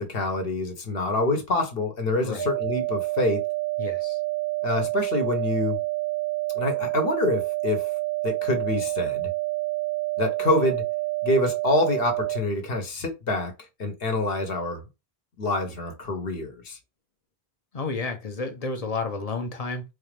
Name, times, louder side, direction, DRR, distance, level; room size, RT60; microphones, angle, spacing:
voice 1, 0.0-3.4 4.6-5.8 6.5-7.8 8.2-9.3 10.2-10.8 11.2-13.5 13.8-14.8 15.4-16.8, left 2 dB, 65° left, 1.1 m, -26 dB
sound 1, 2.4-12.4, right 19 dB, 75° right, 0.9 m, -28 dB
voice 2, 3.8-4.2 17.7-19.8, left 3 dB, 40° left, 0.7 m, -31 dB
4.1 x 2.5 x 3.2 m
omnidirectional pair, 1.1 m